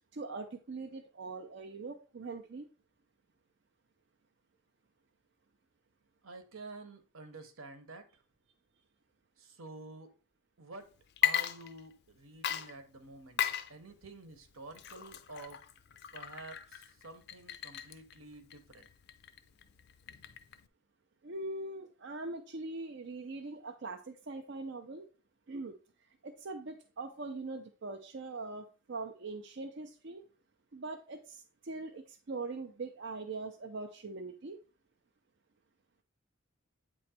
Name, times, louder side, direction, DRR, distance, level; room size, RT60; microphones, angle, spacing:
voice 1, 0.1-2.7 21.2-25.1 25.5-25.8 26.2-30.2 30.7-34.6, right 3 dB, 55° right, 0.5 m, -42 dB
voice 2, 6.2-8.0 9.4-10.1 10.6-10.9 11.2-13.4 13.7-15.6 16.1-18.9, right 2 dB, 80° right, 1.1 m, -49 dB
Water / Liquid, 11.1-12.1 12.4-20.7, left 11 dB, 50° left, 0.4 m, -37 dB
8.6 x 3.1 x 4.3 m
head